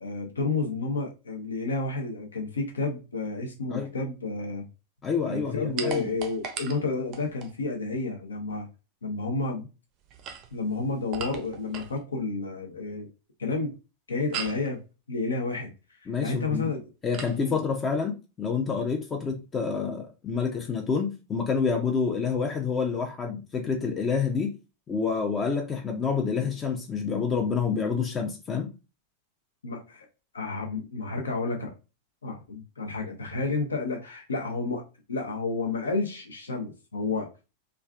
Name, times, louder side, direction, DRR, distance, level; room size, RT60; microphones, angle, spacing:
voice 1, 0.0-4.6 5.2-8.7 9.0-9.7 10.5-13.1 13.4-13.7 14.1-14.8 15.1-15.7 16.2-16.9 17.4-17.6 29.6-30.1 30.3-31.7 32.2-34.8 35.1-37.3, left 3 dB, 70° left, 0.8 m, -30 dB
voice 2, 5.0-6.1 16.1-16.7 17.0-24.5 24.9-28.7, left 5 dB, 20° left, 0.5 m, -28 dB
sound 1, 5.8-7.6 10.0-12.0 14.3-14.7 17.1-17.4, right 7 dB, 40° right, 0.5 m, -38 dB
3.3 x 2.5 x 2.3 m
figure-of-eight pair, 90°, 0 cm